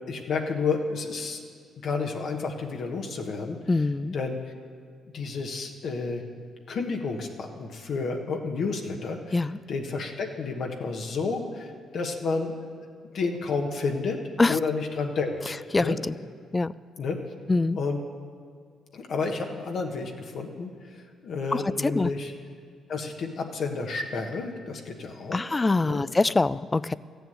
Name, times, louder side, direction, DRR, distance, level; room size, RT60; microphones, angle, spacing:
voice 1, 0.1-1.4 1.8-3.6 4.1-4.4 5.1-6.2 6.7-12.9 13.1-14.2 14.5-16.0 17.0-17.2 17.8-18.0 18.9-22.3 22.9-25.4 25.8-26.0, left 4 dB, 65° left, 2 dB, 1.3 m, -31 dB
voice 2, 3.7-4.2 9.3-9.6 14.4-14.6 15.7-16.1 16.5-16.7 17.5-17.8 21.5-22.1 25.3-26.9, left 3 dB, 20° left, 18 dB, 0.3 m, -24 dB
14.0 x 7.1 x 9.3 m, 2.1 s
cardioid pair, 90°, 0 cm